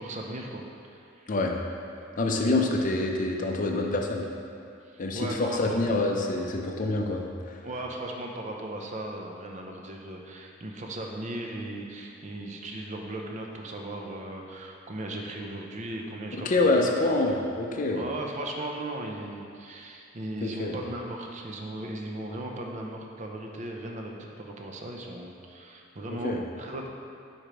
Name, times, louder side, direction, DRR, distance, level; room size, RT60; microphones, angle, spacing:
voice 1, 0.0-1.3 4.8-5.8 7.6-17.1 17.7-26.9, right 1 dB, 35° right, 1 dB, 0.6 m, -37 dB
voice 2, 2.2-4.3 5.0-7.5 16.3-18.0 20.4-20.7 26.1-26.4, left 2 dB, 40° left, 1 dB, 0.6 m, -26 dB
4.9 x 4.4 x 5.0 m, 2.4 s
head